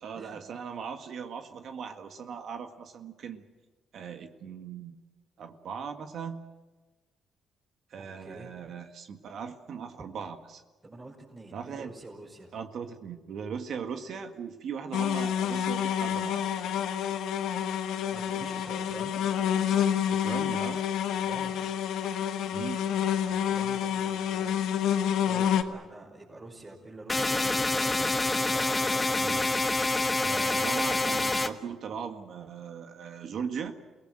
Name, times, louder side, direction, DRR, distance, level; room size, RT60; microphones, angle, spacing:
voice 1, 0.0-3.4 3.9-5.0 5.4-6.4 7.9-10.6 11.5-11.9 12.5-16.4 20.1-20.8 22.5-22.8 29.2-29.5 30.2-33.7, right 6 dB, 65° right, 6 dB, 1.8 m, -39 dB
voice 2, 8.0-8.5 10.8-12.5 18.1-19.3 21.1-21.6 23.1-24.6 25.2-29.1, right 2 dB, 25° right, -5 dB, 5.5 m, -46 dB
sound 1, 14.9-25.6, left 9 dB, 85° left, 1.4 m, -28 dB
sound 2, 27.1-31.5, left 2 dB, 20° left, 1.4 m, -27 dB
28.5 x 18.5 x 7.8 m, 1.2 s
cardioid pair, 90°, 0 cm